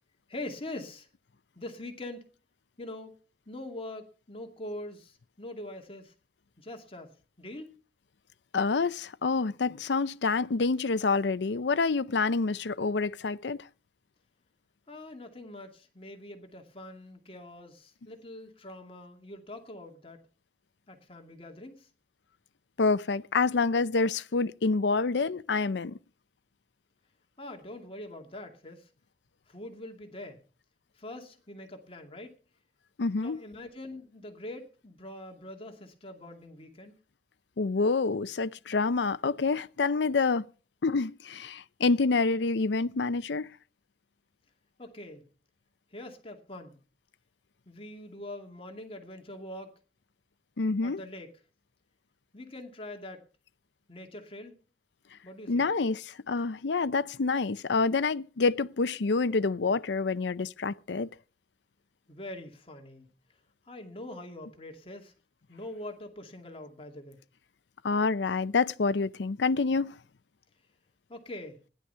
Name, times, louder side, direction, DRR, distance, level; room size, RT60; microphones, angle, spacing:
voice 1, 0.3-1.1 1.6-2.3 2.8-3.2 3.5-6.1 6.6-7.1 7.4-7.7 14.9-20.2 20.9-21.9 27.4-28.9 29.5-30.4 31.0-32.3 33.2-36.9 44.8-45.2 45.9-46.8 47.7-49.8 50.8-51.3 52.3-53.2 53.9-54.5 55.2-55.7 62.1-63.1 63.7-65.1 65.5-67.2 71.1-71.6, left 1 dB, 30° left, 2.4 m, -43 dB
voice 2, 8.5-13.6 22.8-26.0 33.0-33.4 37.6-40.5 40.8-43.5 50.6-51.0 55.5-61.1 67.8-69.9, left 4 dB, 80° left, 0.6 m, -27 dB
16.0 x 11.0 x 5.6 m
head